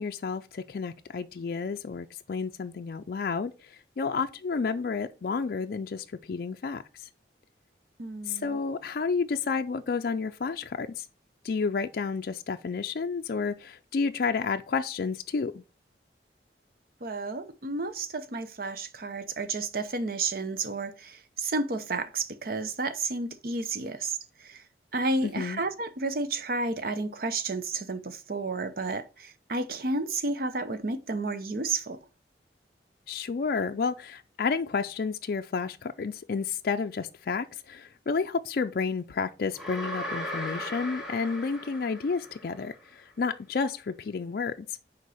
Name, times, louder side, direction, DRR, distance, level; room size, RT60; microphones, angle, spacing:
voice 1, 0.0-7.1 8.3-11.1 11.4-15.6 25.2-25.6 33.1-44.8, left 5 dB, 55° left, 0.4 m, -31 dB
voice 2, 8.0-8.6 17.0-24.6 24.9-32.0, right 3 dB, 55° right, 0.7 m, -31 dB
sound 1, 39.6-42.7, equal, 5° right, 1.4 m, -37 dB
6.7 x 4.5 x 4.8 m
head